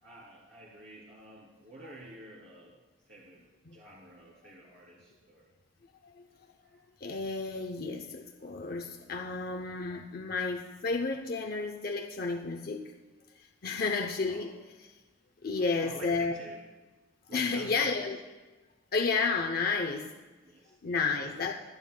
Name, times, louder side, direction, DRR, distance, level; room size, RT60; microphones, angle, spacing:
voice 1, 0.0-2.7 3.1-3.4 3.7-5.5 6.7-6.8 14.3-14.5 15.6-16.6 17.3-18.0 19.6-19.7 20.4-21.2, right 1 dB, 65° right, -5 dB, 3.0 m, -50 dB
voice 2, 7.0-12.8 13.6-14.5 15.4-16.3 17.3-18.2 18.9-20.1 20.8-21.5, left 4 dB, 50° left, 4 dB, 0.6 m, -31 dB
26.5 x 9.0 x 2.2 m, 1.2 s
head